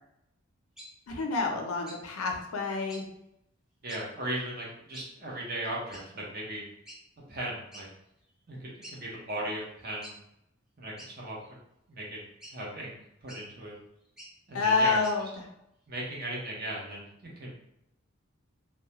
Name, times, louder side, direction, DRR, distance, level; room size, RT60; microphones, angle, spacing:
sound 1, 0.8-0.9 1.9-2.0 2.9-3.0 3.9-4.0 4.9-5.1 5.9-6.1 6.8-7.0 7.7-7.9 8.3-8.4 8.8-9.0 10.0-10.2 11.0-11.5 12.4-12.6 13.3-13.4 14.1-14.3 15.0-15.2, equal, 5° right, 0.5 m, -47 dB
voice 1, 1.1-3.1 14.5-15.3, left 4 dB, 85° left, 3 dB, 0.5 m, -28 dB
voice 2, 3.8-6.6 7.3-7.9 8.5-10.1 10.8-11.4 11.9-12.2 12.5-12.9 13.2-13.7 14.5-15.0 15.9-17.5, right 1 dB, 45° right, -4 dB, 0.7 m, -37 dB
2.2 x 2.1 x 2.8 m, 0.81 s
head